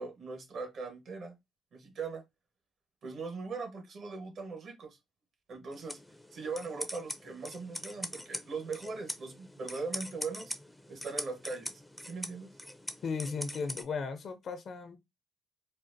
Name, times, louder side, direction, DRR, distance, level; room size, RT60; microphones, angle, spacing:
voice 1, 0.0-1.4 1.7-2.2 3.0-5.0 5.5-6.0 6.3-10.5 10.9-12.5, right 4 dB, 60° right, 1.2 m, -40 dB
sound 1, 5.7-13.8, left 1 dB, 5° left, 0.5 m, -43 dB
voice 2, 13.0-15.0, left 5 dB, 60° left, 0.7 m, -36 dB
4.1 x 2.1 x 2.6 m
cardioid pair, 90°, 0 cm